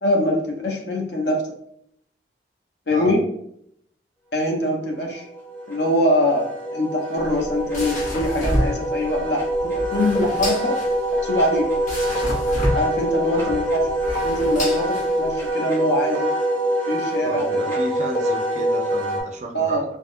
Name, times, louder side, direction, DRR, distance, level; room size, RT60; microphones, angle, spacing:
voice 1, 0.0-1.4 2.9-3.2 4.3-5.3 5.7-10.8 11.1-11.7 12.7-13.9 14.2-16.3 16.9-17.8 19.5-19.8, left 1 dB, 70° left, 1 dB, 0.6 m, -23 dB
Wind instrument woodwind instrument, 4.8-19.2, right 1 dB, 10° left, 0.6 m, -25 dB
sound 1, 7.2-15.5, equal, 45° left, 0.9 m, -29 dB
voice 2, 17.2-19.8, right 2 dB, 40° right, 3 dB, 0.4 m, -33 dB
3.4 x 2.0 x 2.5 m, 0.71 s
head